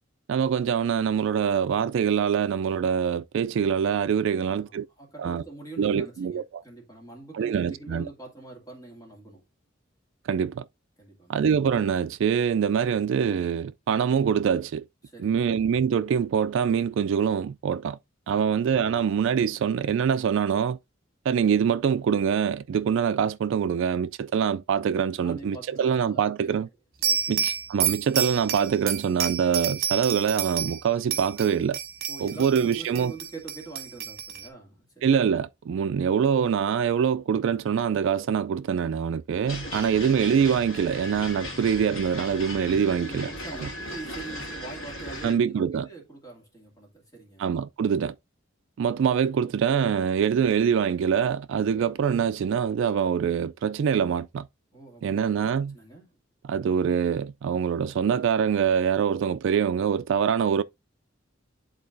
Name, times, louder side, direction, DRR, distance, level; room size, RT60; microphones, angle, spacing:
voice 1, 0.3-4.9 5.2-5.4 5.8-6.6 7.3-8.1 10.3-10.6 11.3-14.8 15.2-18.0 18.3-20.8 21.3-26.7 27.3-31.8 32.2-33.1 35.0-43.7 45.2-45.9 47.4-48.1 48.8-54.5 55.0-55.7 56.4-60.6, right 7 dB, 65° right, 0.3 m, -24 dB
voice 2, 4.5-9.4 11.0-11.4 15.1-15.5 18.3-18.6 25.2-26.5 27.0-27.5 32.1-35.1 39.7-40.0 42.7-47.5 54.7-56.1, right 3 dB, 20° left, 2.4 m, -44 dB
sound 1, 27.0-30.8 31.1-34.5, right 8 dB, 50° right, 1.3 m, -30 dB
sound 2, 39.5-45.3, equal, 85° left, 2.5 m, -37 dB
10.5 x 3.8 x 2.6 m
head